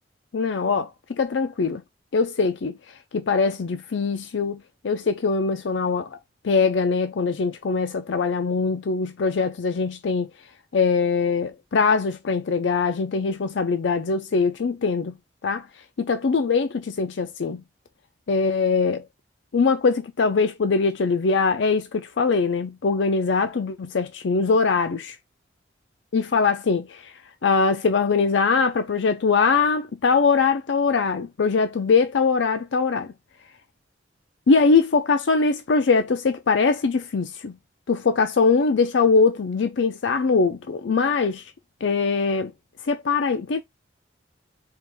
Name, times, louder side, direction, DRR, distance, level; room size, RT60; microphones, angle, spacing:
voice 1, 0.3-1.8 2.1-2.8 3.1-6.2 6.4-10.3 10.7-15.1 15.4-15.7 16.0-17.6 18.3-19.0 19.5-25.2 26.1-27.1 27.4-33.1 34.5-37.5 37.9-41.5 41.8-42.5 42.8-43.6, left 4 dB, 80° left, 0.5 m, -22 dB
4.6 x 2.5 x 3.5 m
head